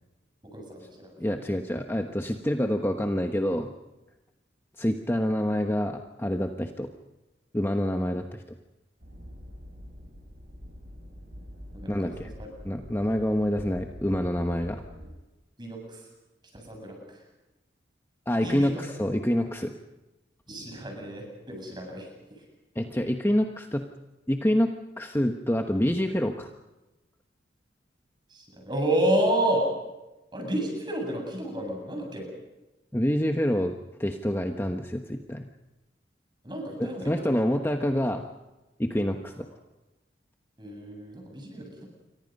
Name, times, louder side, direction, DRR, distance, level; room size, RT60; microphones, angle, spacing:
voice 1, 0.4-1.5 11.7-12.3 15.6-16.1 16.5-17.2 18.4-18.8 20.5-22.1 28.3-29.7 30.3-32.3 36.4-37.2 40.6-41.9, right 1 dB, 25° right, 2 dB, 8.0 m, -30 dB
voice 2, 1.2-3.7 4.8-6.9 7.5-8.4 11.9-12.3 12.6-14.8 18.3-19.7 22.7-23.8 24.3-24.7 25.0-26.5 32.9-35.5 36.8-38.3 38.8-39.5, equal, 15° left, 4 dB, 1.1 m, -27 dB
sound 1, 9.0-15.1, equal, 65° right, 7.0 m, -45 dB
28.5 x 24.0 x 5.4 m, 1.0 s
head